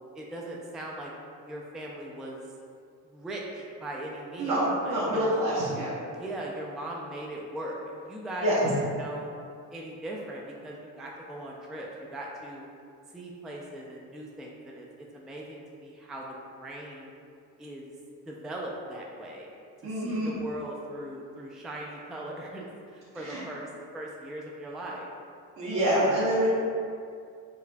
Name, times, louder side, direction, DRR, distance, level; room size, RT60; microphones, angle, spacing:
voice 1, 0.1-1.1 1.4-2.4 3.1-4.6 4.8-5.3 5.7-5.8 6.1-8.7 9.0-12.7 13.1-17.1 17.6-17.9 18.3-19.5 19.8-25.1, right 1 dB, ahead, -3 dB, 0.4 m, -39 dB
voice 2, 4.4-5.9 8.4-8.7 19.8-20.3 23.2-23.4 25.6-26.5, right 1 dB, 55° right, -10 dB, 1.0 m, -26 dB
4.8 x 2.4 x 2.2 m, 2.4 s
supercardioid pair, 60°, 40 cm